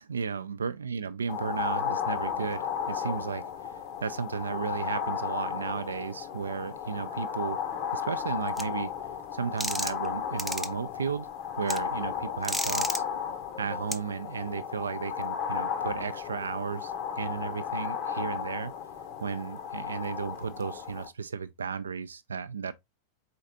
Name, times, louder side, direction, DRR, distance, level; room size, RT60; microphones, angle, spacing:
voice 1, 0.0-7.6 7.9-8.9 9.3-11.3 11.6-13.0 13.6-18.7 19.2-22.7, right 6 dB, 70° right, 0.3 m, -34 dB
sound 1, 1.3-21.1, left 8 dB, 45° left, 0.8 m, -34 dB
sound 2, 8.6-8.7 9.6-10.1 10.4-10.7 11.7-11.8 12.4-13.0 13.9-14.0, equal, ahead, 0.4 m, -31 dB
4.2 x 4.0 x 2.6 m
figure-of-eight pair, 90°, 0 cm